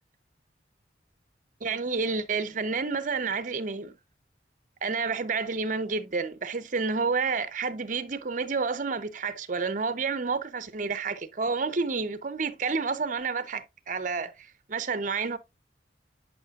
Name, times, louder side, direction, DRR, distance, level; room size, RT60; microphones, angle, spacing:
voice 1, 1.6-3.9 4.8-15.4, right 4 dB, 45° right, 0.7 m, -30 dB
9.6 x 5.8 x 2.4 m
head